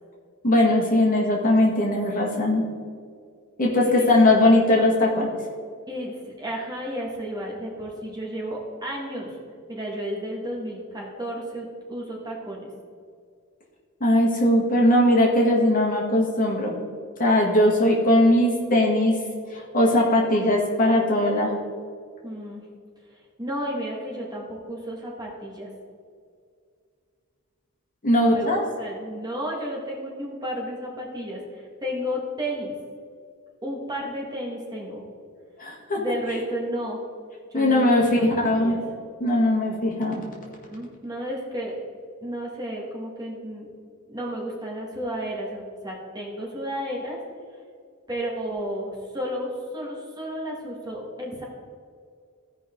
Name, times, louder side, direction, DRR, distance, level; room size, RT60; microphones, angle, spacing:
voice 1, 0.4-2.6 3.6-5.3 14.0-16.7 17.2-19.2 19.5-21.6 28.0-28.6 35.6-36.0 37.5-38.8 39.2-40.2, left 1 dB, 40° left, -2 dB, 1.9 m, -20 dB
voice 2, 5.9-9.4 9.7-12.7 22.2-22.6 23.1-25.7 28.2-32.8 33.6-35.0 36.0-37.0 37.5-38.8 40.6-41.8 42.2-43.7 44.1-47.2 48.1-51.4, equal, 20° right, -2 dB, 1.8 m, -32 dB
16.0 x 5.4 x 3.8 m, 2.2 s
head